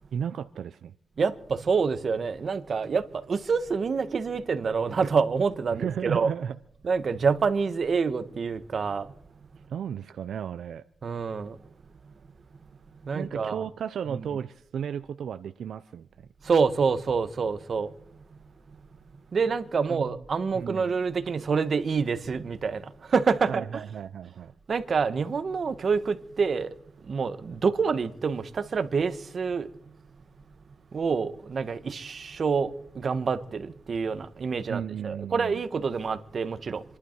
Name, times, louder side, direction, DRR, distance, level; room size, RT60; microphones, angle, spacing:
voice 1, 0.1-0.9 5.7-6.6 9.7-10.8 13.1-16.3 19.9-20.2 20.5-20.9 23.5-24.5 34.7-35.5, right 8 dB, 85° right, 0.6 m, -34 dB
voice 2, 1.2-3.0 3.3-6.3 6.8-9.1 11.0-11.5 13.1-13.6 16.5-17.9 19.3-22.8 23.1-23.8 24.7-26.7 27.1-29.7 30.9-32.7 33.0-36.8, right 5 dB, 55° right, 1.3 m, -27 dB
27.5 x 11.5 x 4.6 m
cardioid pair, 90°, 0 cm